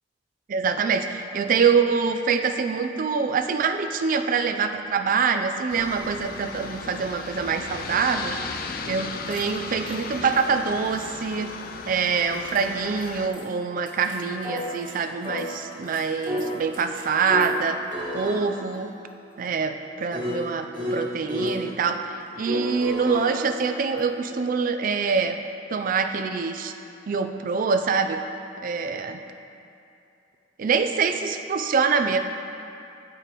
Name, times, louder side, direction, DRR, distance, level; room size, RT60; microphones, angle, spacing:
voice 1, 0.5-8.3 8.8-11.5 11.9-17.8 18.1-18.9 19.4-25.4 25.7-26.7 27.1-28.2 28.6-29.2 30.6-32.2, right 5 dB, 50° right, 7 dB, 0.4 m, -25 dB
Aircraft, 5.7-13.3, left 4 dB, 55° left, 0.5 m, -36 dB
sound 1, 9.3-9.4 9.9-10.4 11.0-11.1 12.3-12.6 13.0-13.1 13.3-13.4 13.9-14.9 15.2-17.6 17.9-21.6 22.5-24.2, equal, 25° right, 1.5 m, -33 dB
13.5 x 5.0 x 3.0 m, 2.7 s
head